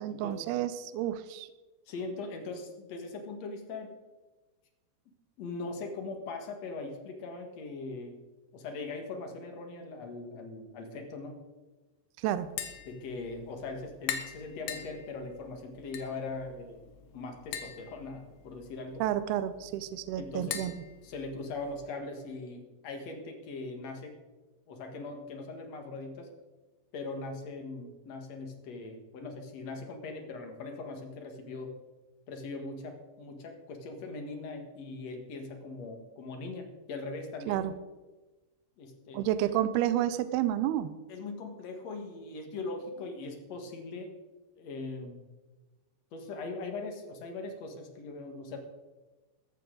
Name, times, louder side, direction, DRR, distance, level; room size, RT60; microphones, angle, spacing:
voice 1, 0.0-1.5 12.2-12.5 19.0-20.7 37.5-37.7 39.1-40.9, right 12 dB, 85° right, 12 dB, 2.3 m, -30 dB
voice 2, 1.9-3.9 5.4-8.2 8.5-11.4 12.9-16.8 17.1-19.0 20.2-20.6 21.0-24.2 24.7-26.3 26.9-31.8 32.3-37.6 38.8-39.2 41.1-44.1 44.6-45.2 46.1-48.6, left 3 dB, 55° left, 4 dB, 2.0 m, -40 dB
Tap, 12.4-21.9, left 9 dB, 75° left, 3.1 m, -43 dB
15.0 x 13.5 x 3.9 m, 1.2 s
omnidirectional pair, 5.2 m